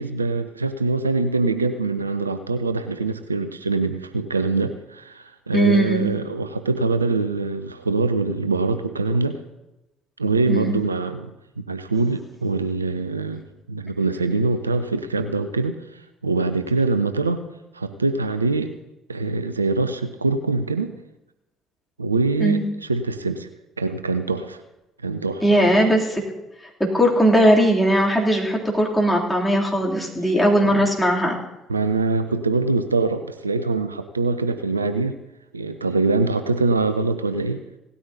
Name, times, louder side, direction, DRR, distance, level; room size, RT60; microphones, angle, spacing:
voice 1, 0.0-9.4 10.2-11.3 11.7-17.4 17.7-18.7 19.1-21.0 22.0-23.5 23.8-24.6 25.0-25.9 30.6-30.9 31.7-35.2 35.5-37.6, right 3 dB, 85° right, 10 dB, 0.5 m, -24 dB
voice 2, 5.5-6.1 10.5-10.8 22.4-22.6 25.4-26.2 26.8-31.4, right 1 dB, 5° left, -3 dB, 2.9 m, -19 dB
17.5 x 13.0 x 2.8 m, 0.97 s
figure-of-eight pair, 50°, 0 cm